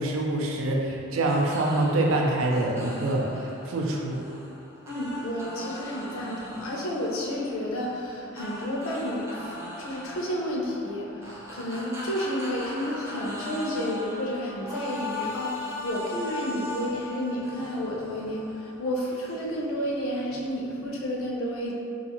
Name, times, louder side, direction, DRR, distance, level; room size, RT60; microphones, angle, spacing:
voice 1, 0.0-4.2, right 2 dB, 85° right, 0 dB, 0.4 m, -25 dB
sound 1, 1.3-20.8, left 1 dB, 15° right, 0.3 m, -39 dB
voice 2, 4.9-11.1 11.5-21.7, equal, 90° left, -3 dB, 0.5 m, -31 dB
2.4 x 2.3 x 2.9 m, 2.5 s
head